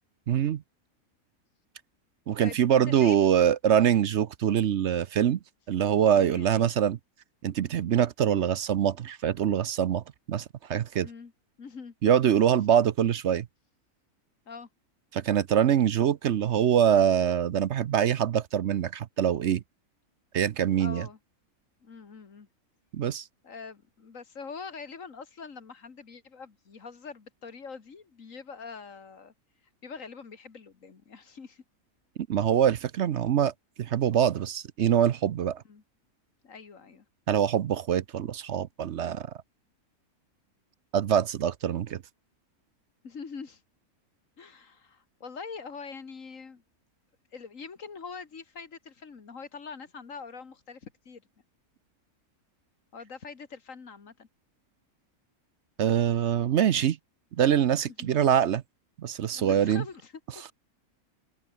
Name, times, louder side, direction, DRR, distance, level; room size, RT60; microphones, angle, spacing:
voice 1, 0.3-0.6 2.3-5.4 5.7-7.0 7.4-10.0 10.3-10.4 10.7-11.1 12.0-13.5 15.1-19.6 20.3-21.1 22.9-23.3 32.3-35.6 37.3-39.3 40.9-42.0 55.8-57.0 57.4-58.6 59.0-59.8, right 9 dB, 60° right, 0.9 m, -24 dB
voice 2, 2.4-3.2 6.1-6.7 11.0-11.3 11.6-11.9 14.5-14.7 20.8-21.2 21.8-22.5 23.4-29.3 29.8-31.6 35.6-35.8 36.4-37.1 43.0-43.6 44.4-46.6 47.3-51.2 52.9-54.3 58.0-58.2 59.3-60.1, left 5 dB, 60° left, 2.3 m, -44 dB
open air
omnidirectional pair, 1.6 m